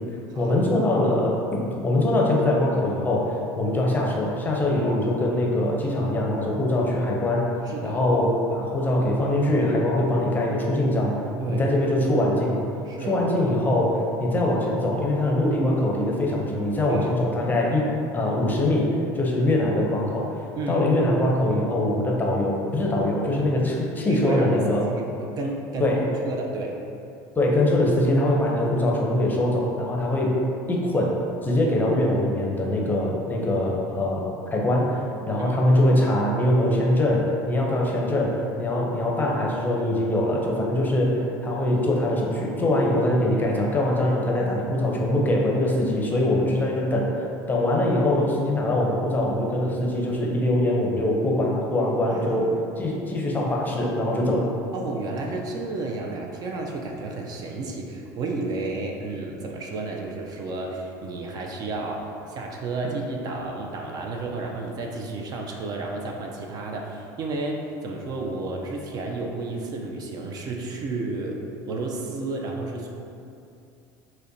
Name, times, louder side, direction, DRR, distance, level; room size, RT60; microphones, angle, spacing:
voice 1, 0.4-7.5 7.8-12.6 13.1-20.4 20.7-24.8 25.8-26.1 27.4-30.4 30.7-54.5, left 1 dB, 20° left, -2 dB, 0.6 m, -23 dB
voice 2, 7.6-8.1 11.4-11.7 12.9-13.2 16.9-17.1 20.6-20.9 24.1-25.9 26.2-26.8 35.4-35.6 44.3-44.8 52.1-52.6 54.7-72.9, right 3 dB, 45° right, 1 dB, 0.4 m, -32 dB
5.0 x 2.1 x 2.6 m, 2.6 s
supercardioid pair, 105°, 9 cm